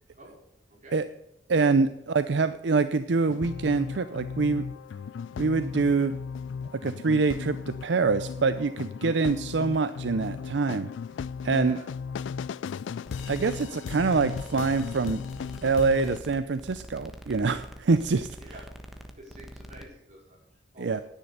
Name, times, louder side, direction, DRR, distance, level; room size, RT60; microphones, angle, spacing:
voice 1, 0.7-1.0 11.6-11.9 18.4-18.6 19.2-21.0, right 1 dB, 40° right, -2 dB, 4.8 m, -49 dB
voice 2, 1.5-4.6 5.4-6.1 6.8-10.9 11.4-11.8 13.3-15.2 15.6-18.3 20.8-21.0, right 4 dB, 70° right, 12 dB, 0.5 m, -25 dB
sound 1, 3.3-16.2, left 6 dB, 80° left, 0.3 m, -36 dB
sound 2, 13.1-19.8, equal, ahead, 1.2 m, -45 dB
10.5 x 10.0 x 6.8 m, 0.84 s
head